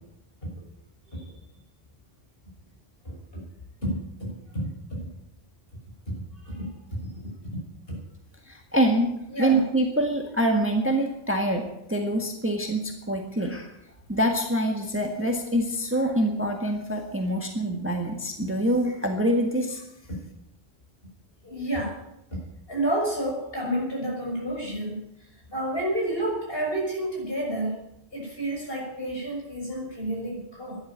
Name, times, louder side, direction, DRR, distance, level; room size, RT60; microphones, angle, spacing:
voice 1, 3.0-3.4 3.8-5.1 6.4-6.7 7.0-7.6 7.9-8.0 9.3-9.6 21.4-22.0 22.3-22.4 22.7-25.0 25.5-27.7 28.1-30.8, right 1 dB, 50° left, -2 dB, 6.6 m, -30 dB
voice 2, 8.5-13.7 14.1-19.8, right 1 dB, 10° right, 3 dB, 1.7 m, -25 dB
12.5 x 11.0 x 8.9 m, 0.83 s
omnidirectional pair, 1.3 m